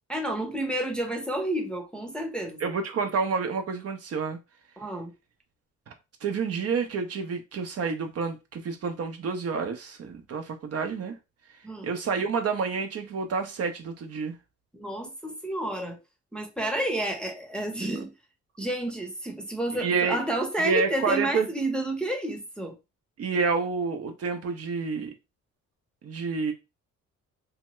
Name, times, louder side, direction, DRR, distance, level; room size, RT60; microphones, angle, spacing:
voice 1, 0.1-2.6 4.8-5.1 11.6-11.9 14.7-16.0 16.3-18.1 18.6-22.8, right 1 dB, 5° left, 0.7 m, -30 dB
voice 2, 2.6-4.4 6.2-11.2 11.8-14.3 19.8-20.2 20.6-21.5 23.2-25.1 26.0-26.5, right 5 dB, 55° right, 0.7 m, -29 dB
2.8 x 2.2 x 3.0 m
cardioid pair, 90°, 30 cm